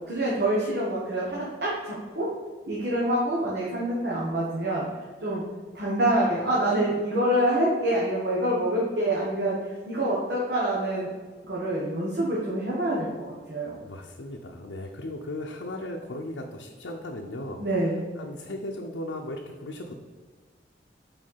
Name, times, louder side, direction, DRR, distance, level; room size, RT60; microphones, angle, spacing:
voice 1, 0.1-2.3 2.7-4.8 5.2-5.4 5.7-9.6 9.9-11.1 11.4-13.8 17.6-18.0, right 1 dB, 60° right, -6 dB, 1.4 m, -26 dB
voice 2, 13.8-17.6 18.2-19.9, left 1 dB, 90° left, 0 dB, 0.7 m, -36 dB
5.3 x 4.4 x 5.6 m, 1.5 s
head